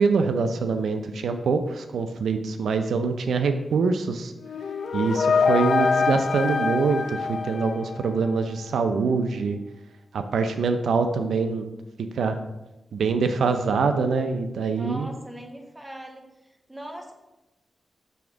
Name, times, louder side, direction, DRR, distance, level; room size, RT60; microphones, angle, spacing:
voice 1, 0.0-4.3 4.9-9.6 10.1-11.7 12.1-12.4 12.9-15.1, right 4 dB, 90° right, 7 dB, 0.4 m, -24 dB
sound 1, 4.4-8.4, left 5 dB, 70° left, 0.3 m, -25 dB
voice 2, 14.7-17.1, right 1 dB, 15° right, 3 dB, 1.1 m, -40 dB
7.0 x 3.5 x 4.9 m, 0.99 s
cardioid pair, 80°, 0 cm